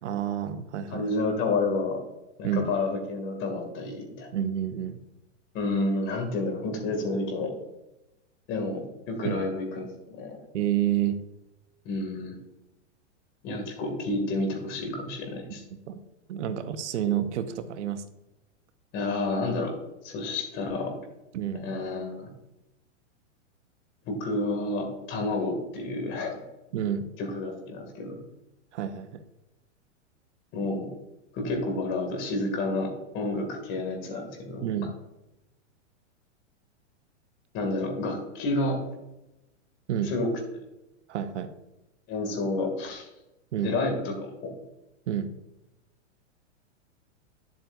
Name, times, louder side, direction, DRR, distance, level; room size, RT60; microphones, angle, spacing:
voice 1, 0.0-1.1 2.4-2.7 4.3-5.0 9.2-9.4 10.5-11.2 15.9-16.0 16.3-18.0 21.3-21.7 26.7-27.0 28.7-29.2 34.6-34.9 39.9-40.1 41.1-41.5 43.5-43.8 45.1-45.3, right 10 dB, 65° right, 10 dB, 0.9 m, -29 dB
voice 2, 0.9-2.0 2.4-4.3 5.5-7.5 8.5-9.9 10.1-10.4 11.8-12.4 13.4-15.6 18.9-19.7 20.0-21.0 21.6-22.3 24.1-26.4 27.2-28.2 30.5-30.9 31.3-34.7 37.5-38.8 40.0-40.3 42.1-43.1 43.6-44.5, left 2 dB, 30° left, 4 dB, 2.3 m, -30 dB
10.5 x 7.7 x 2.6 m, 0.94 s
hypercardioid pair, 145°, 37 cm